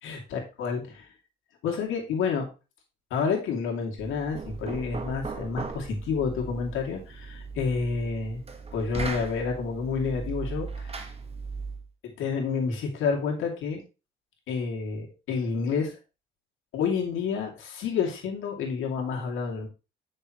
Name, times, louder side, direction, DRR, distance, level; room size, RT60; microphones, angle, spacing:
voice 1, 0.0-1.1 1.6-2.5 3.1-8.4 8.7-11.1 12.0-13.8 14.5-16.0 16.7-19.7, left 5 dB, 85° left, 0 dB, 2.6 m, -29 dB
Knock, 4.0-11.9, right 4 dB, 30° right, 1.3 m, -38 dB
8.3 x 6.5 x 3.1 m, 0.30 s
cardioid pair, 90°, 20 cm